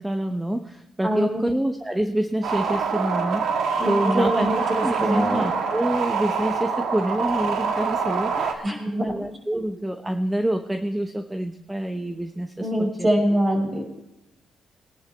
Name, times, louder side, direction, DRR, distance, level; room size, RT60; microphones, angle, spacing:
voice 1, 0.0-3.6 3.9-4.5 4.8-12.7 13.0-13.1, right 1 dB, 10° right, 6 dB, 0.9 m, -27 dB
voice 2, 1.0-1.4 3.8-5.5 8.6-9.0 9.5-9.6 12.6-13.8, equal, 30° right, 0 dB, 6.0 m, -24 dB
sound 1, 2.4-8.5, right 5 dB, 75° right, 1.7 m, -25 dB
21.5 x 11.0 x 3.4 m, 0.91 s
cardioid pair, 90°, 0 cm